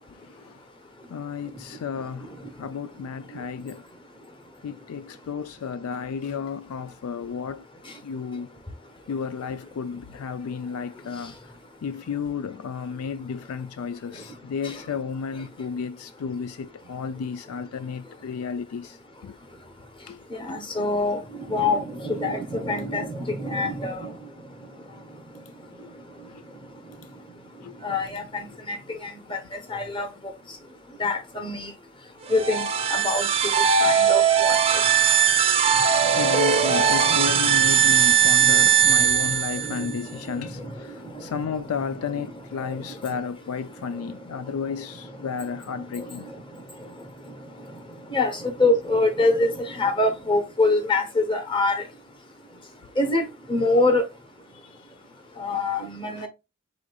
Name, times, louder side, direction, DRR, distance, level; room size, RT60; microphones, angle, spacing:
voice 1, 0.2-0.6 1.1-2.3 2.6-3.8 4.6-7.7 8.0-8.5 9.1-11.3 11.8-19.3 20.1-20.2 20.5-20.6 25.8-25.9 26.3-26.4 27.6-27.8 28.5-28.6 36.2-46.2 53.6-53.7 54.6-54.8 56.2-56.3, left 6 dB, 75° left, 0.4 m, -33 dB
voice 2, 20.3-21.2 21.5-24.1 27.8-28.2 28.7-29.0 29.3-29.4 29.7-30.1 31.0-31.7 32.3-34.5 37.1-37.2 39.6-40.0 40.6-40.7 48.1-51.8 53.0-53.2 53.5-54.1 55.4-56.3, left 2 dB, 25° left, 1.0 m, -24 dB
sound 1, 32.3-39.9, right 8 dB, 25° right, 0.5 m, -20 dB
5.0 x 3.7 x 2.3 m
head